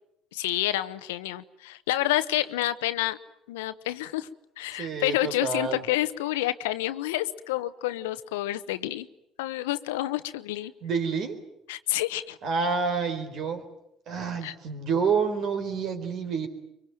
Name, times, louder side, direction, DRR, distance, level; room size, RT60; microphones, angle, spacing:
voice 1, 0.3-3.2 3.5-4.3 4.6-9.1 9.4-10.7 11.7-12.4 14.4-14.5, left 15 dB, 80° left, 13 dB, 1.0 m, -29 dB
voice 2, 4.7-5.8 10.8-11.4 12.4-13.6 14.1-16.5, right 5 dB, 55° right, 7 dB, 4.2 m, -28 dB
24.0 x 24.0 x 9.2 m, 0.80 s
hypercardioid pair, 65°, 0 cm